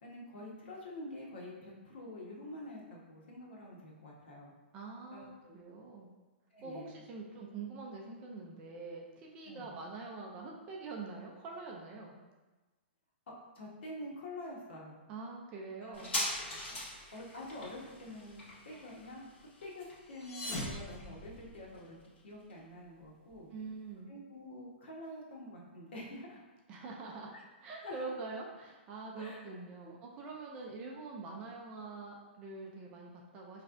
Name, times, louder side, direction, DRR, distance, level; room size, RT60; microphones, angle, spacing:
voice 1, 0.0-4.5 5.1-5.6 6.5-6.9 9.4-9.7 13.5-15.0 15.8-16.1 17.1-19.3 19.6-22.0 22.2-23.5 24.1-26.4 27.3-27.4 27.7-28.1 29.2-29.5 29.8-29.9, left 1 dB, 70° left, -3 dB, 1.2 m, -47 dB
voice 2, 4.7-6.1 6.6-12.2 15.1-16.1 23.5-24.1 26.7-27.3 27.6-33.6, right 4 dB, 20° right, -1 dB, 0.4 m, -45 dB
sound 1, 15.9-23.0 23.3-23.4, left 1 dB, 85° left, 1.5 m, -42 dB
sound 2, 20.0-21.9, left 1 dB, 25° left, 0.8 m, -42 dB
4.6 x 3.2 x 2.5 m, 1.2 s
hypercardioid pair, 170°, 6 cm